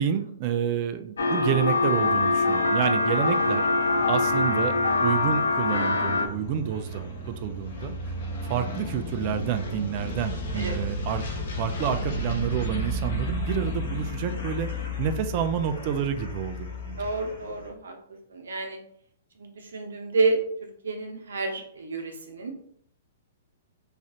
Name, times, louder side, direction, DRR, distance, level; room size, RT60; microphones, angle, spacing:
voice 1, 0.0-3.7 4.1-7.9 8.5-14.7 15.0-17.0, right 9 dB, 45° right, 9 dB, 0.3 m, -29 dB
sound 1, 1.2-6.3, left 3 dB, 80° left, 0.5 m, -23 dB
sound 2, 2.0-17.7, left 1 dB, 60° left, 0.9 m, -34 dB
voice 2, 10.5-10.9 17.0-17.9 18.3-18.8 19.4-20.4 20.8-22.5, right 3 dB, 75° right, 3 dB, 0.9 m, -29 dB
3.1 x 2.5 x 3.8 m, 0.65 s
hypercardioid pair, 115°, 0 cm